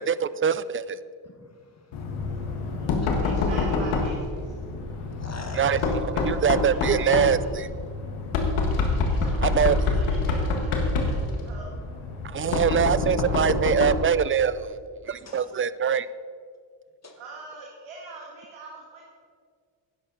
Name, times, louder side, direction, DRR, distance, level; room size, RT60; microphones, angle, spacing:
voice 1, 0.1-1.0 5.6-7.7 9.4-10.1 12.3-14.7 15.1-16.1, right 7 dB, 30° right, 16 dB, 0.3 m, -24 dB
voice 2, 1.2-2.0 2.3-2.7 3.0-3.1 4.9-6.0 15.2-15.5 17.0-17.2, left 3 dB, 35° left, 4 dB, 1.5 m, -45 dB
Knock, 1.9-14.1, left 3 dB, 90° left, 1.6 m, -26 dB
voice 3, 3.2-4.5 6.3-7.0 7.4-7.5 9.1-9.5 9.9-11.7 17.2-19.1, right 3 dB, 80° right, -1 dB, 1.8 m, -43 dB
11.5 x 10.0 x 3.9 m, 2.1 s
cardioid pair, 70°, 48 cm